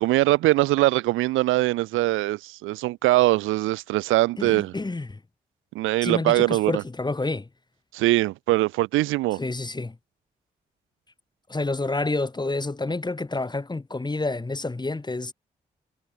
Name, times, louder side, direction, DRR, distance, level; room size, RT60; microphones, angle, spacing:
voice 1, 0.0-4.7 5.7-6.8 7.9-9.4, right 18 dB, 85° right, 1.1 m, -22 dB
voice 2, 4.4-5.2 6.0-7.5 9.4-10.0 11.5-15.3, left 2 dB, 20° left, 1.3 m, -29 dB
hypercardioid pair, 40°, 20 cm